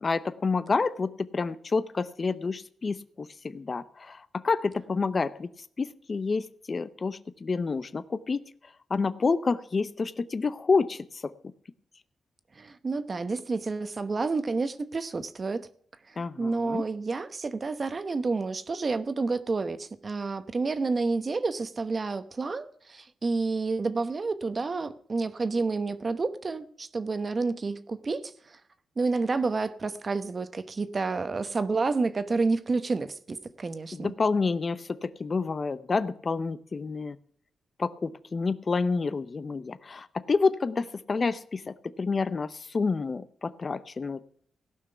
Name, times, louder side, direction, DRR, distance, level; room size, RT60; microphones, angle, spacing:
voice 1, 0.0-5.5 5.8-8.5 8.9-11.4 16.2-16.8 33.9-37.2 37.8-44.2, left 4 dB, 40° left, 0.6 m, -29 dB
voice 2, 12.6-15.7 16.1-28.6 29.0-34.1, right 3 dB, 35° right, 1.0 m, -29 dB
16.5 x 6.0 x 6.7 m
cardioid pair, 100°, 0 cm